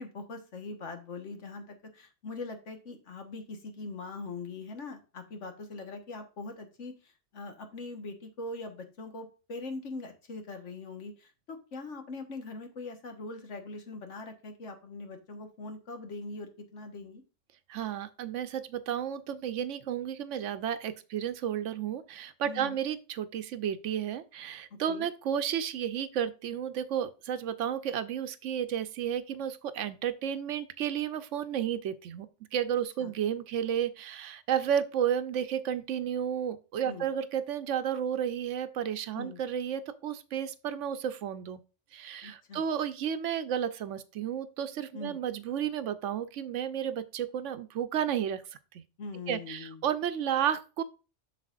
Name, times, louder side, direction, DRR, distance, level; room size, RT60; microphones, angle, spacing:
voice 1, 0.0-17.2 22.4-22.8 24.7-25.1 33.0-33.1 36.8-37.1 39.1-39.4 42.2-42.6 44.9-45.2 49.0-49.9, left 3 dB, 75° left, 1.7 m, -42 dB
voice 2, 17.7-41.6 41.9-48.4 48.7-48.8 49.3-50.8, right 9 dB, 80° right, 1.0 m, -32 dB
7.5 x 6.7 x 2.5 m
omnidirectional pair, 1.2 m